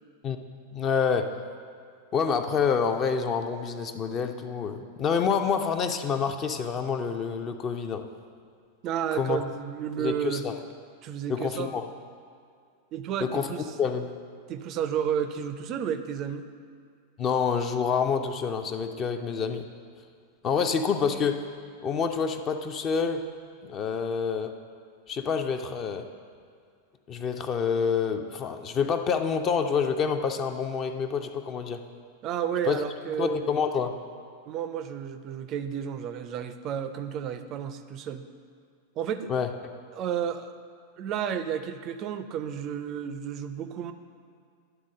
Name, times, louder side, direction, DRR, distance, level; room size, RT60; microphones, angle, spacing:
voice 1, 0.7-1.3 2.1-8.0 9.1-9.4 10.0-10.5 11.3-11.9 13.2-13.5 13.8-14.1 17.2-19.7 20.4-21.4 21.8-23.2 23.7-24.5 25.1-26.1 27.1-31.8 32.7-32.8 33.2-33.9 39.3-39.5, left 6 dB, 30° left, 7 dB, 0.5 m, -27 dB
voice 2, 8.8-10.5 11.0-11.7 12.9-13.7 14.5-16.5 32.2-33.5 34.5-38.2 39.0-39.3 39.9-40.5 41.0-43.9, right 8 dB, 35° right, 10 dB, 0.4 m, -32 dB
11.0 x 3.8 x 6.3 m, 2.2 s
figure-of-eight pair, 90°, 0 cm